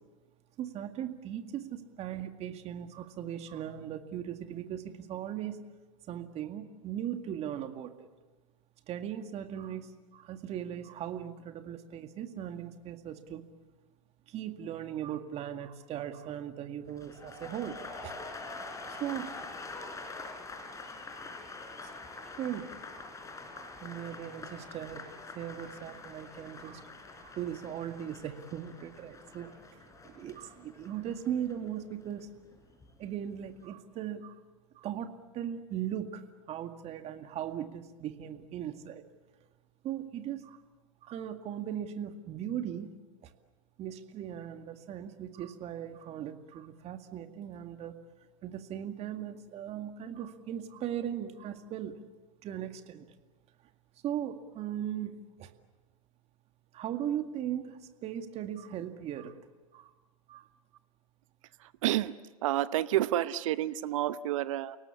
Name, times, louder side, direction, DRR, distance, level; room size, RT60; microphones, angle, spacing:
voice 1, 0.6-5.7 6.1-8.1 8.9-13.4 14.3-18.1 19.0-19.3 22.4-23.1 23.5-25.0 25.3-26.8 27.2-32.3 33.0-34.4 34.8-39.0 39.8-40.6 41.0-42.9 43.2-43.3 43.8-48.0 48.4-52.0 52.4-53.1 54.0-55.5 56.7-59.4 59.7-59.9 60.3-60.5, right 10 dB, 35° right, 7 dB, 2.1 m, -38 dB
sound 1, 16.9-32.9 33.2-33.7, left 3 dB, 20° left, 4.1 m, -45 dB
voice 2, 61.6-62.1 62.4-64.8, right 13 dB, 65° right, 15 dB, 0.8 m, -29 dB
29.5 x 18.5 x 8.5 m, 1.3 s
hypercardioid pair, 95°, 18 cm